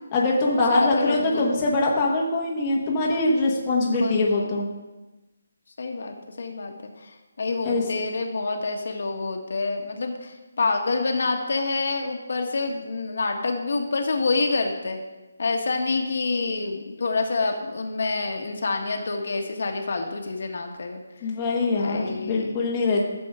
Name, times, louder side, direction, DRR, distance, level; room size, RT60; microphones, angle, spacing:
voice 1, 0.1-4.7 7.6-7.8 21.2-23.1, left 2 dB, 20° left, -4 dB, 1.4 m, -23 dB
voice 2, 0.7-1.5 4.0-4.5 5.8-15.0 15.4-21.0 21.8-22.6, left 3 dB, 60° left, 3 dB, 1.4 m, -27 dB
13.5 x 6.9 x 3.7 m, 1.1 s
hypercardioid pair, 170°, 0 cm